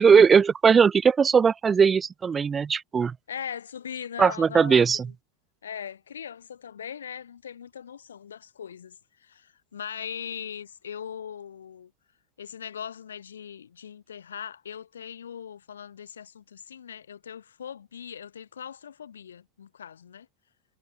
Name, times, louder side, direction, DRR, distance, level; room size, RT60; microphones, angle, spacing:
voice 1, 0.0-3.2 4.2-5.1, right 6 dB, 20° right, 4.1 m, -19 dB
voice 2, 3.3-5.1 5.6-11.9 12.4-20.3, left 8 dB, 70° left, 7.1 m, -40 dB
figure-of-eight pair, 85°, 0 cm